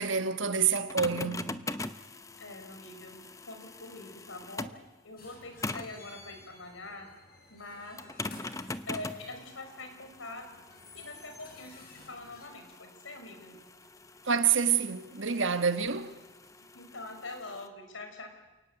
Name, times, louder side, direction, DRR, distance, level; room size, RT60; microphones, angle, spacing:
voice 1, 0.0-1.5 14.3-16.1, right 6 dB, 80° right, 1.5 m, -27 dB
sound 1, 0.7-4.9 5.6-6.0 8.0-17.7, left 2 dB, 15° left, 0.8 m, -42 dB
voice 2, 2.4-4.7 5.0-7.1 7.5-8.0 8.9-10.5 10.9-13.6 16.7-18.3, left 2 dB, 85° left, 5.3 m, -44 dB
sound 2, 5.2-12.5, left 2 dB, 50° left, 6.2 m, -54 dB
29.0 x 18.5 x 8.1 m
head